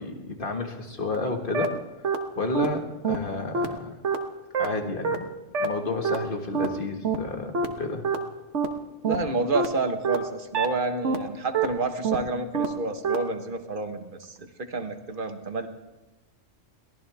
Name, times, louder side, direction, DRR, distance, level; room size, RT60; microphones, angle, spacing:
voice 1, 0.0-1.7 2.4-3.9 4.6-5.3 5.6-8.1, left 2 dB, 45° left, 3 dB, 1.9 m, -31 dB
sound 1, 1.1-1.2 1.5-1.7 2.0-2.2 2.5-2.7 3.0-3.2 3.5-3.7 4.0-4.2 4.5-4.7 5.0-5.2 5.5-5.7 6.0-6.2 6.5-6.7 7.0-7.2 7.5-7.7 8.0-8.2 8.5-8.7 9.0-9.2 9.5-9.7 10.0-10.2 10.5-10.7 11.0-11.2 11.5-11.7 12.0-12.2 12.5-12.7 13.0-13.2, right 5 dB, 70° right, 1.6 m, -24 dB
voice 2, 9.0-15.7, right 3 dB, 45° right, 6 dB, 1.4 m, -29 dB
22.5 x 17.5 x 3.5 m, 1.1 s
omnidirectional pair, 1.3 m